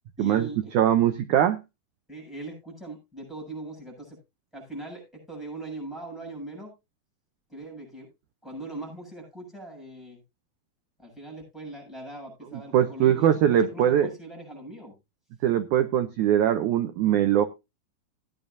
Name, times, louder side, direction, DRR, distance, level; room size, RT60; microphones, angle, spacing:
voice 1, 0.2-0.7 2.1-4.2 4.5-6.7 7.5-8.1 8.4-10.2 11.0-14.9, right 2 dB, ahead, 0 dB, 7.3 m, -40 dB
voice 2, 0.7-1.6 12.5-14.1 15.4-17.5, right 10 dB, 90° right, 11 dB, 1.7 m, -22 dB
17.5 x 9.1 x 2.6 m, 0.24 s
omnidirectional pair, 4.4 m